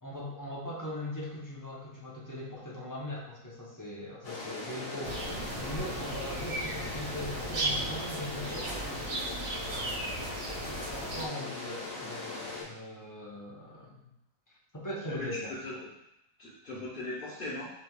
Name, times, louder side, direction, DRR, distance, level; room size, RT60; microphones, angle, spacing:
voice 1, 0.0-9.5 10.7-14.1 14.7-15.8, left 1 dB, 20° left, -5 dB, 0.7 m, -40 dB
sound 1, 4.2-12.6, left 3 dB, 75° left, 1.7 m, -40 dB
sound 2, 5.0-11.3, right 2 dB, 55° right, 0.7 m, -36 dB
voice 2, 15.1-15.7 16.4-17.7, left 2 dB, 40° left, -11 dB, 1.3 m, -39 dB
6.4 x 3.2 x 2.4 m, 0.84 s
omnidirectional pair, 1.4 m